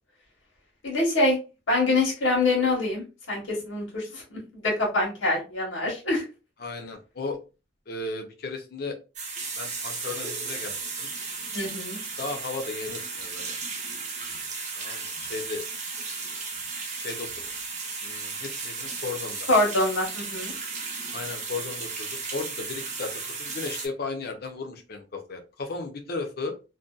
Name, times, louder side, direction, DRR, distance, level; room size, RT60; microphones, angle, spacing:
voice 1, 0.8-1.4 1.7-6.2 11.5-12.0 19.5-20.5, left 2 dB, 90° left, -2 dB, 1.1 m, -25 dB
voice 2, 6.6-7.4 7.9-9.0 9.5-11.1 12.2-13.5 14.7-15.6 16.0-16.1 16.9-17.5 18.0-19.5 21.1-26.5, left 3 dB, 55° left, 4 dB, 0.5 m, -35 dB
sound 1, 9.2-23.9, right 4 dB, 40° right, 0.6 m, -35 dB
2.6 x 2.2 x 2.3 m, 0.31 s
head